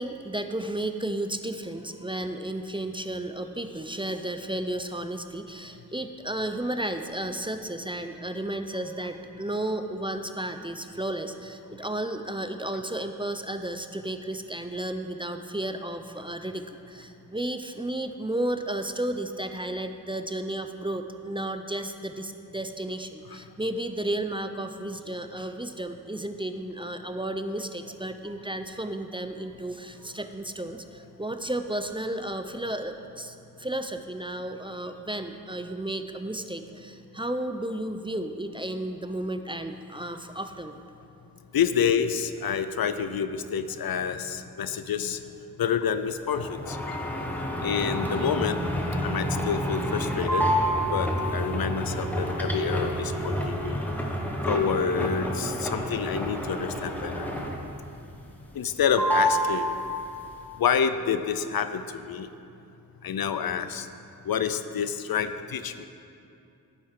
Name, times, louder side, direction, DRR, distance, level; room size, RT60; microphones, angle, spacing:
voice 1, 0.0-40.8, right 1 dB, 15° right, 7 dB, 0.4 m, -33 dB
voice 2, 41.5-45.2 45.6-47.2 47.6-48.6 49.0-50.5 50.9-53.8 54.5-57.3 58.5-59.8 60.6-62.3 63.0-63.9 64.2-65.9, left 7 dB, 75° left, 10 dB, 0.5 m, -28 dB
sound 1, 46.3-57.8 58.1-58.7 59.0-60.3, equal, 5° left, 1.1 m, -29 dB
9.9 x 7.6 x 3.8 m, 2.6 s
cardioid pair, 45°, 37 cm